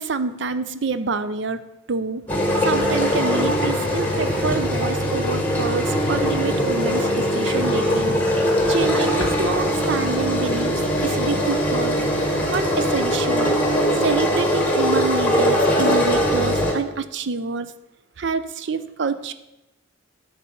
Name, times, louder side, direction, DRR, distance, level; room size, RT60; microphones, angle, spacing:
voice 1, 0.0-1.6 1.9-8.1 8.6-12.0 12.5-13.6 14.0-17.7 18.2-19.3, right 4 dB, 60° right, 12 dB, 0.5 m, -27 dB
sound 1, 2.3-16.7, equal, 10° left, 1.3 m, -21 dB
10.5 x 4.1 x 6.9 m, 0.95 s
head